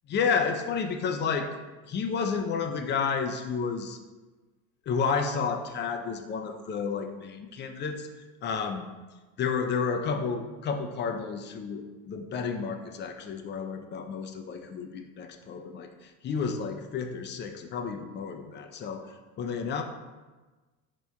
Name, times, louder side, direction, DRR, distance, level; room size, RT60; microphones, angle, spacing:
voice 1, 0.1-1.5 1.9-4.0 4.9-8.1 8.4-8.9 9.4-19.8, left 5 dB, 25° left, 6 dB, 0.4 m, -31 dB
4.4 x 4.1 x 2.3 m, 1.2 s
hypercardioid pair, 80°, 43 cm